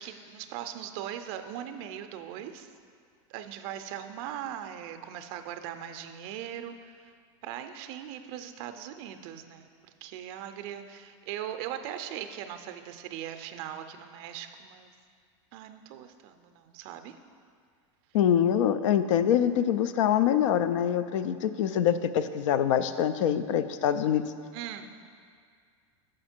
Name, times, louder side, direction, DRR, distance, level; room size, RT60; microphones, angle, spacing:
voice 1, 0.0-2.7 3.3-7.1 7.4-9.7 10.0-14.9 15.5-17.2 24.5-24.9, right 10 dB, 50° right, 8 dB, 0.5 m, -40 dB
voice 2, 18.1-24.3, left 9 dB, 80° left, 11 dB, 0.4 m, -25 dB
6.3 x 5.0 x 4.4 m, 2.1 s
supercardioid pair, 130°, 16 cm